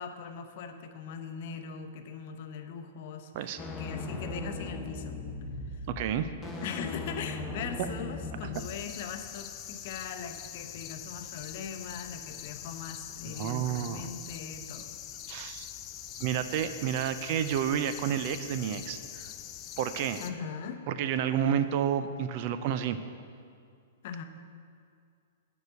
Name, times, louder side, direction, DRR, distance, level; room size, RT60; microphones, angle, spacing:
voice 1, 0.0-5.2 5.7-5.9 6.6-14.9 20.2-20.8 24.0-24.2, left 6 dB, 55° left, 6 dB, 0.8 m, -40 dB
sound 1, 3.6-8.6, left 2 dB, 10° left, 0.9 m, -38 dB
voice 2, 5.9-6.3 13.2-14.1 15.3-15.7 16.2-19.3 19.8-20.2 20.9-23.0, right 9 dB, 45° right, 11 dB, 0.5 m, -30 dB
sound 2, 8.5-20.3, left 10 dB, 30° left, 0.5 m, -44 dB
9.4 x 4.9 x 7.9 m, 2.3 s
hypercardioid pair, 145°, 0 cm